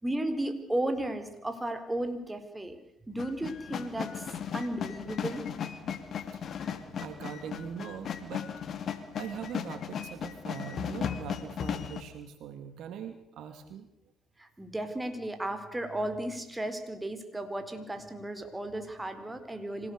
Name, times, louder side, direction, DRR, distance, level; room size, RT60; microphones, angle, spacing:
voice 1, 0.0-2.8 3.1-5.4 14.4-19.9, right 1 dB, 15° right, 7 dB, 4.5 m, -34 dB
sound 1, 3.2-12.0, left 7 dB, 55° left, 2.6 m, -36 dB
voice 2, 6.1-6.5 6.8-8.5 8.9-13.9, right 8 dB, 65° right, 8 dB, 2.6 m, -42 dB
26.5 x 18.0 x 6.7 m, 0.79 s
hypercardioid pair, 60°, 0 cm